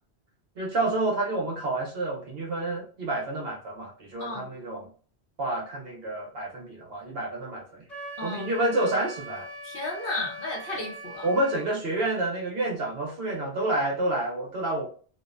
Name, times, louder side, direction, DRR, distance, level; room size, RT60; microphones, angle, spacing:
voice 1, 0.6-4.9 5.4-7.8 8.2-9.5 11.2-14.9, right 2 dB, 65° right, -1 dB, 0.9 m, -29 dB
Wind instrument woodwind instrument, 7.9-11.7, right 2 dB, ahead, 0.8 m, -41 dB
voice 2, 8.2-8.5 9.6-11.3, left 2 dB, 60° left, -2 dB, 0.7 m, -33 dB
2.5 x 2.0 x 2.4 m, 0.42 s
omnidirectional pair, 1.2 m